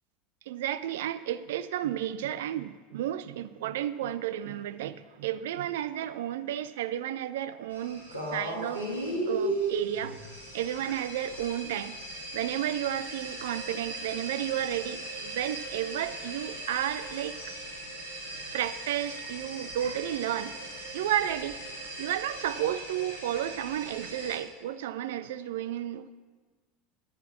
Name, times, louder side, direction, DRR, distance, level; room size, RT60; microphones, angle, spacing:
voice 1, 0.5-8.1 8.3-8.8 9.3-10.2 10.5-12.0 12.3-17.4 18.5-20.6 20.9-21.6 22.0-26.1, right 11 dB, 60° right, 0.5 m, -32 dB
sound 1, 7.7-24.4, right 2 dB, 85° left, 2.1 m, -37 dB
10.5 x 8.2 x 7.0 m
figure-of-eight pair, 75°, 0 cm